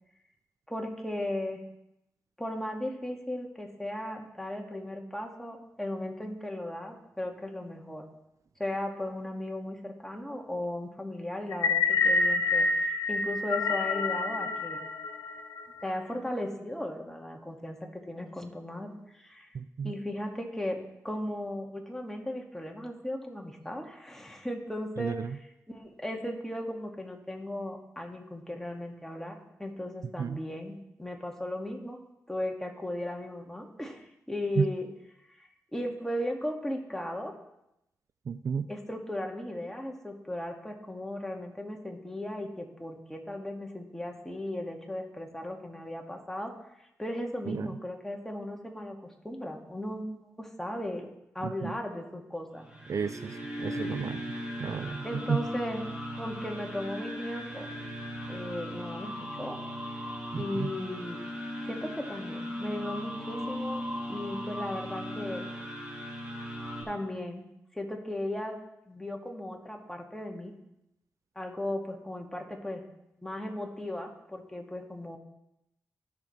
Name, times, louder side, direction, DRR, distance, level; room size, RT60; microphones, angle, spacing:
voice 1, 0.7-1.6 2.4-8.0 8.6-14.8 15.8-19.5 19.8-25.2 25.7-32.0 32.3-34.9 35.3-37.3 38.7-46.5 47.0-52.7 55.0-55.8 56.2-57.7 58.3-59.6 59.9-60.0 60.3-61.2 61.7-63.8 64.1-65.5 66.8-67.4 67.7-70.5 71.4-72.8 73.2-75.2, left 1 dB, 5° left, 1 dB, 2.1 m, -36 dB
sound 1, 11.5-15.8, left 3 dB, 90° left, 0.7 m, -27 dB
voice 2, 19.5-19.9 25.0-25.4 30.2-30.4 34.6-34.7 38.3-38.7 47.5-47.7 51.4-51.8 52.9-55.4 60.3-60.7, right 6 dB, 60° right, 13 dB, 0.4 m, -32 dB
sound 2, 52.6-66.8, equal, 15° right, 4.0 m, -38 dB
16.5 x 6.7 x 3.3 m, 0.86 s
cardioid pair, 55°, 6 cm